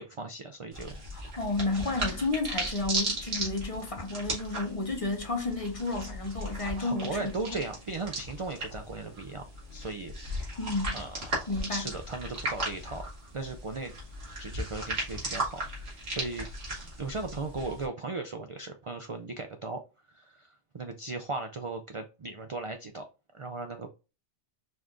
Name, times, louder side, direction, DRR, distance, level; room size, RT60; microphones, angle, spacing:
voice 1, 0.0-1.0 6.8-9.4 9.7-10.1 10.9-11.2 11.7-13.0 13.3-13.9 14.4-16.5 17.0-19.8 20.1-23.0 23.3-23.9, right 3 dB, 60° right, 0.3 m, -37 dB
sound 1, 0.7-17.9, right 1 dB, 80° right, 2.0 m, -36 dB
voice 2, 1.1-7.6 10.6-11.0 11.5-11.9, left 3 dB, 35° left, 0.7 m, -32 dB
5.0 x 2.5 x 3.6 m
omnidirectional pair, 1.2 m